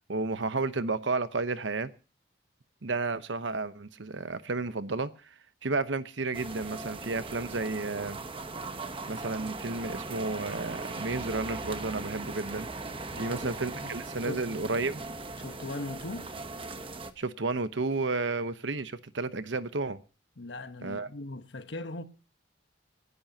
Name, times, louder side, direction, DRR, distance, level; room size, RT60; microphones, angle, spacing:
voice 1, 0.1-1.9 2.8-5.3 5.6-8.2 9.1-12.7 13.2-15.0 17.2-20.0 20.8-21.1, right 3 dB, 75° right, 0.9 m, -32 dB
sound 1, 6.3-17.1, right 3 dB, 30° right, 1.0 m, -39 dB
voice 2, 14.3-14.6 15.4-16.3 20.4-22.0, left 2 dB, 70° left, 1.2 m, -39 dB
29.0 x 11.0 x 2.8 m
head